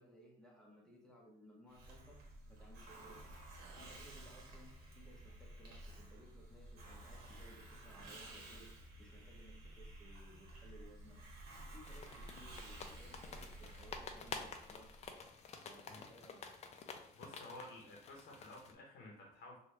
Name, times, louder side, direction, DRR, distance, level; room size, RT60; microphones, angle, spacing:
voice 1, 0.0-3.2 3.6-11.2 11.7-15.1 15.6-16.5, equal, 5° left, -2 dB, 0.8 m, -61 dB
Hiss, 1.7-15.2, right 1 dB, 65° right, 1.1 m, -53 dB
sound 1, 11.8-18.7, left 5 dB, 40° left, 0.4 m, -50 dB
voice 2, 17.1-19.6, left 1 dB, 70° left, -1 dB, 0.8 m, -53 dB
3.3 x 2.3 x 3.1 m, 0.70 s
cardioid pair, 110°, 17 cm